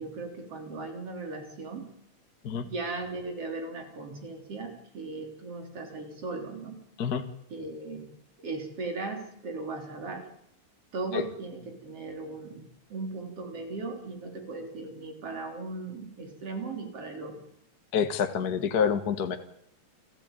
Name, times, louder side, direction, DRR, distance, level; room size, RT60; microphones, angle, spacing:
voice 1, 0.0-1.8 2.5-6.8 7.5-8.0 8.4-10.3 10.9-17.4, right 3 dB, 55° right, 3 dB, 4.6 m, -37 dB
voice 2, 17.9-19.4, left 7 dB, 40° left, 7 dB, 1.7 m, -27 dB
29.0 x 15.5 x 9.1 m, 0.77 s
omnidirectional pair, 3.3 m